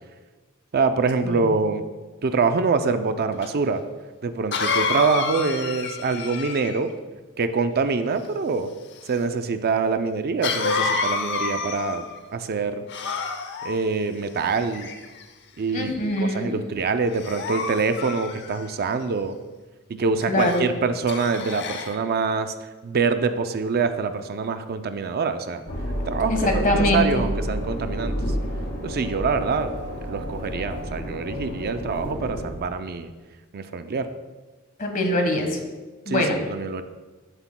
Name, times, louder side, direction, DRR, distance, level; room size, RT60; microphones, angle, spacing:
voice 1, 0.7-1.8 2.2-3.8 4.2-6.9 7.4-8.7 9.0-12.9 13.6-14.9 15.6-15.9 16.2-19.4 19.9-22.5 22.8-25.6 26.1-26.3 26.7-28.2 28.8-29.7 30.0-33.1 33.5-34.1 36.1-36.8, right 4 dB, 45° right, 9 dB, 0.4 m, -25 dB
Cough, 3.4-3.5 4.5-6.9 10.4-12.2 12.9-13.8 14.6-15.2 15.8-16.1 17.1-18.7 20.4-20.6 21.1-22.0, left 4 dB, 55° left, 0.8 m, -28 dB
voice 2, 15.7-16.6 20.3-20.7 26.3-27.2 34.8-35.6 36.0-36.4, left 1 dB, 40° left, 3 dB, 1.4 m, -23 dB
sound 1, 25.7-32.5, equal, 85° left, 2.1 m, -30 dB
14.0 x 7.9 x 2.2 m, 1.3 s
head